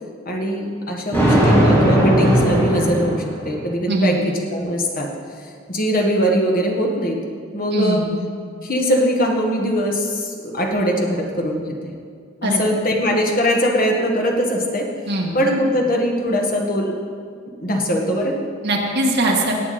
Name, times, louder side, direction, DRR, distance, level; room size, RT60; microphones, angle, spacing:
voice 1, 0.3-4.2 4.5-5.1 5.7-7.2 7.5-8.0 8.6-11.9 12.4-14.9 15.3-16.9 17.6-18.5, equal, 45° left, 0 dB, 1.7 m, -21 dB
Thunder, 1.1-3.7, equal, 10° left, 2.8 m, -17 dB
voice 2, 3.9-4.2 7.7-8.1 12.4-12.6 15.1-15.3 18.6-19.5, right 1 dB, 55° right, -1 dB, 2.0 m, -21 dB
18.0 x 8.5 x 4.4 m, 2.2 s
head